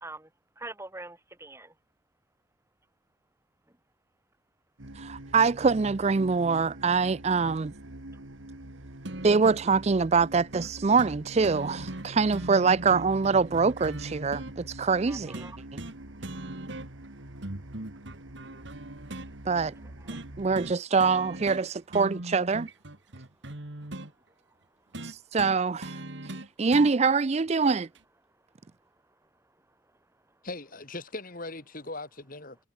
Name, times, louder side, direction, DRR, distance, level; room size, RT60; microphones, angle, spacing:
voice 1, 0.6-1.7 15.1-15.6 19.8-20.2, right 2 dB, 15° right, 2.8 m, -44 dB
sound 1, 4.8-20.7, right 1 dB, 85° right, 2.6 m, -45 dB
voice 2, 5.0-7.7 9.2-15.4 15.7-15.8 19.5-19.7 20.4-22.7 25.0-26.0 26.6-27.9, right 4 dB, 35° right, 0.4 m, -24 dB
sound 2, 9.0-9.7 10.5-10.7 11.0-11.2 11.4-14.5 15.3-16.0 16.2-17.1 17.4-19.3 20.1-20.3 20.5-20.7 21.0-21.6 21.9-24.1 24.9-26.9 27.9-28.0, right 1 dB, 65° right, 2.2 m, -39 dB
voice 3, 30.4-32.6, left 2 dB, 45° left, 4.0 m, -39 dB
head